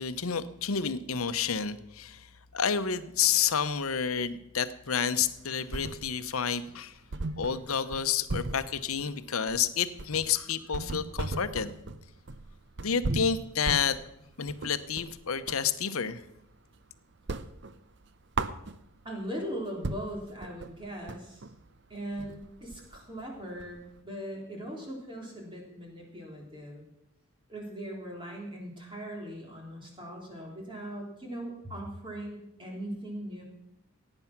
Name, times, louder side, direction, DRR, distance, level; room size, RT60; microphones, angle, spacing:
voice 1, 0.0-7.0 7.4-11.7 12.8-14.0 14.4-16.2, left 7 dB, 85° left, 12 dB, 0.9 m, -30 dB
sound 1, 5.2-6.4 6.7-6.8 7.1-15.7 16.1-16.8 17.1-19.1 19.5-19.6 19.8-24.0, right 3 dB, 55° right, 0.7 m, -37 dB
voice 2, 19.0-21.4 21.9-26.8 27.5-33.4, right 1 dB, 25° right, -1 dB, 3.3 m, -40 dB
17.0 x 9.0 x 6.0 m, 0.82 s
head